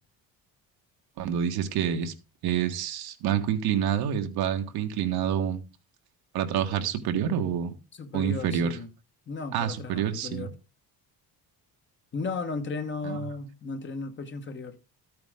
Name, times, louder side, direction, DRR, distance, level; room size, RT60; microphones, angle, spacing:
voice 1, 1.2-2.1 2.4-5.6 6.3-7.8 8.1-8.8 9.5-10.5 13.0-13.2, right 9 dB, 80° right, 1.7 m, -27 dB
voice 2, 7.9-8.9 9.3-10.6 12.1-14.8, left 4 dB, 30° left, 1.3 m, -35 dB
13.5 x 8.7 x 3.7 m
cardioid pair, 145°, 37 cm